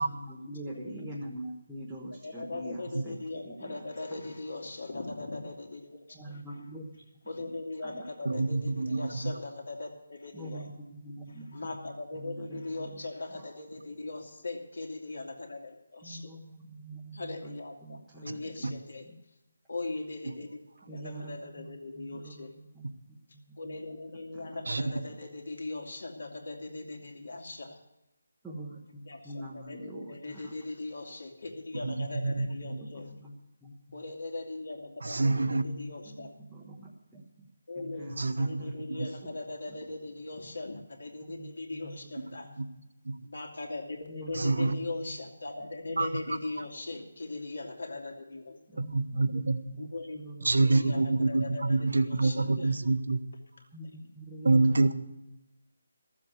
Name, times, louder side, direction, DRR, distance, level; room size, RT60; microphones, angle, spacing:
voice 1, 0.0-3.2 3.4-3.8 6.1-6.9 7.8-8.0 10.3-11.5 12.2-12.9 16.0-17.5 17.8-18.7 20.9-23.2 24.3-24.5 28.4-30.5 32.6-33.3 33.6-33.7 35.5-37.2 37.8-39.3 41.2-41.5 41.8-42.2 42.4-42.5 44.1-44.7 48.7-49.4 49.7-49.9 50.2-50.8 53.7-54.9, right 1 dB, ahead, -9 dB, 0.8 m, -44 dB
voice 2, 2.2-6.4 7.3-10.7 11.3-16.3 17.1-19.0 19.7-20.5 20.9-22.6 23.6-27.8 29.1-33.1 33.9-36.3 37.7-42.5 43.2-48.8 49.8-52.7, left 2 dB, 60° left, 1 dB, 2.3 m, -40 dB
voice 3, 8.2-9.3 18.6-18.7 24.7-24.8 31.8-32.6 35.0-35.6 38.2-38.5 39.0-39.1 42.6-42.7 43.0-43.1 44.3-44.7 46.0-46.1 48.8-49.6 50.4-53.2 54.4-54.9, right 3 dB, 70° right, 11 dB, 1.1 m, -26 dB
13.5 x 7.4 x 9.3 m, 0.92 s
hypercardioid pair, 180°, 0 cm